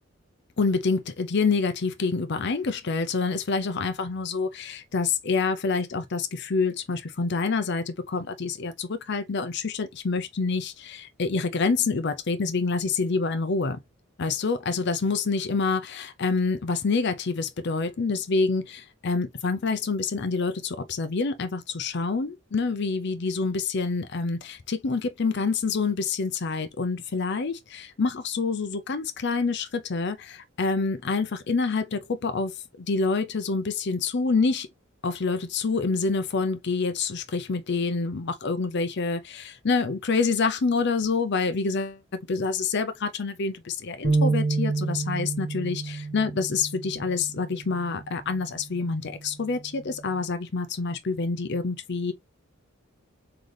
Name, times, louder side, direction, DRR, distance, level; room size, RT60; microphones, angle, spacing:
voice 1, 0.6-13.8 14.2-34.7 35.0-41.9 42.3-52.1, left 4 dB, 55° left, 0.6 m, -27 dB
sound 1, 44.0-50.3, right 3 dB, 50° right, 1.2 m, -30 dB
3.9 x 3.8 x 3.2 m
head